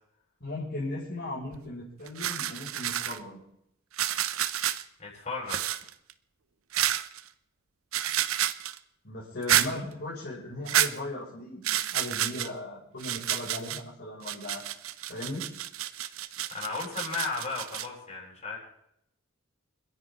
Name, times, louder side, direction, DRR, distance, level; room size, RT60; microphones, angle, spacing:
voice 1, 0.4-3.4 9.0-14.6 15.1-15.5, left 1 dB, 55° left, -7 dB, 5.8 m, -37 dB
sound 1, 1.5-1.7 2.1-3.2 3.9-4.8 5.5-6.1 6.7-7.2 7.9-8.8 9.4-9.7 10.7-10.9 11.6-12.5 13.0-13.8 14.2-17.9, right 11 dB, 80° right, 0.7 m, -29 dB
voice 2, 5.0-5.6 16.5-18.6, left 4 dB, 35° left, -4 dB, 7.6 m, -34 dB
29.5 x 10.5 x 3.7 m, 0.76 s
head